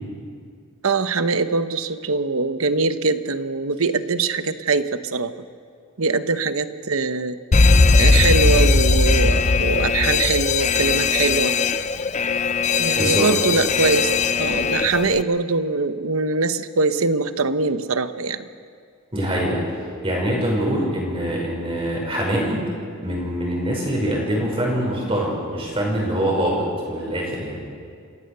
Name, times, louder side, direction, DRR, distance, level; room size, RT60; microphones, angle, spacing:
voice 1, 0.8-5.3 6.0-7.4 8.0-11.5 12.8-14.1 14.4-18.5, right 3 dB, 85° right, 11 dB, 1.0 m, -22 dB
Alarm, 7.5-15.2, left 4 dB, 35° left, 0.5 m, -19 dB
voice 2, 13.0-13.3 19.1-19.6 20.0-22.6 23.0-27.6, equal, 25° right, -3 dB, 5.7 m, -24 dB
27.5 x 16.5 x 6.8 m, 2.2 s
head